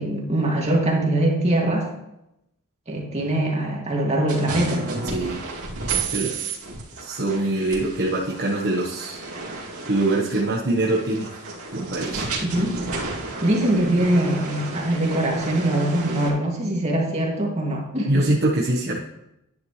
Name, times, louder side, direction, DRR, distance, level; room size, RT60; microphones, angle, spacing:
voice 1, 0.0-1.9 2.9-4.9 12.4-12.8 13.4-18.2, right 1 dB, 30° right, -2 dB, 2.4 m, -22 dB
sound 1, 4.3-16.3, right 3 dB, 75° right, 2.7 m, -32 dB
voice 2, 5.1-5.4 6.1-6.5 7.0-9.2 9.9-11.3 11.7-12.2 18.1-19.0, right 2 dB, 50° right, -3 dB, 1.3 m, -23 dB
11.0 x 10.0 x 3.3 m, 0.86 s
head